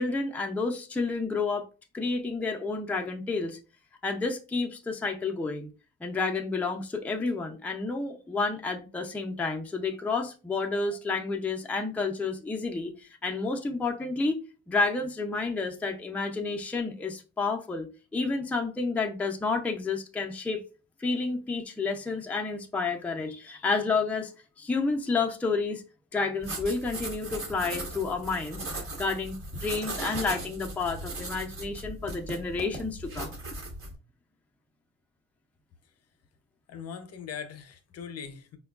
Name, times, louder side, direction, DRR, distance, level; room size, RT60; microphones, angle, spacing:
voice 1, 0.0-1.7 1.9-3.6 4.0-5.7 6.0-14.4 14.7-17.9 18.1-20.6 21.0-24.3 24.6-25.8 26.1-28.6 29.0-33.4, left 4 dB, 5° left, 0.4 m, -30 dB
sound 1, 26.4-33.9, right 2 dB, 45° right, 1.1 m, -38 dB
voice 2, 36.7-38.6, left 7 dB, 55° left, 0.6 m, -40 dB
4.4 x 2.2 x 2.3 m
cardioid pair, 90°, 30 cm